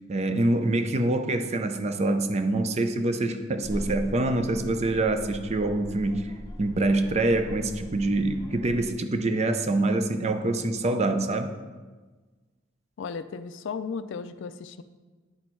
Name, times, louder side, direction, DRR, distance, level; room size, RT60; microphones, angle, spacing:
voice 1, 0.0-6.3 6.6-11.5, right 2 dB, 35° right, 8 dB, 0.5 m, -25 dB
sound 1, 3.6-8.9, equal, 15° left, 0.7 m, -40 dB
voice 2, 13.0-14.8, left 5 dB, 65° left, 12 dB, 0.4 m, -35 dB
9.5 x 4.3 x 4.5 m, 1.3 s
head